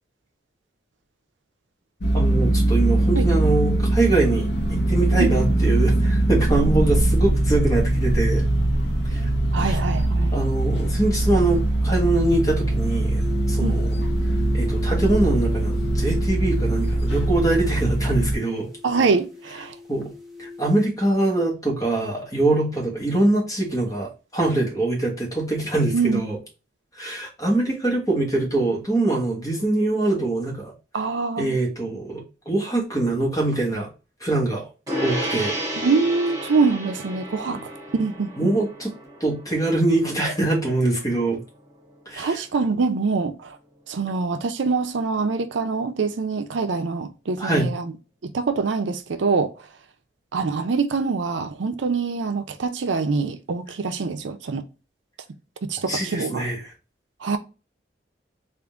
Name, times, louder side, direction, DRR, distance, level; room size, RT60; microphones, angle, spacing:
sound 1, 2.0-18.4, right 1 dB, 60° left, 0.8 m, -21 dB
voice 1, 2.1-8.5 9.1-9.3 9.6-9.8 10.3-14.0 14.5-18.7 19.9-20.1 20.4-26.4 26.9-30.7 31.4-33.9 34.2-34.7 35.0-35.6 37.5-37.6 38.4-38.9 39.2-41.4 42.1-42.4 47.4-47.7 55.9-56.7, right 2 dB, 20° left, 1.3 m, -23 dB
voice 2, 9.5-10.4 13.6-13.8 18.8-19.8 25.9-26.2 30.9-31.6 35.8-38.5 42.2-43.6 43.9-47.9 48.2-49.5 50.3-54.6 55.6-56.5 57.2-57.4, right 4 dB, 80° right, 0.5 m, -24 dB
sound 2, 13.2-20.7, left 3 dB, ahead, 0.7 m, -36 dB
Gong, 34.9-44.6, equal, 20° right, 1.4 m, -34 dB
3.7 x 2.5 x 3.4 m
head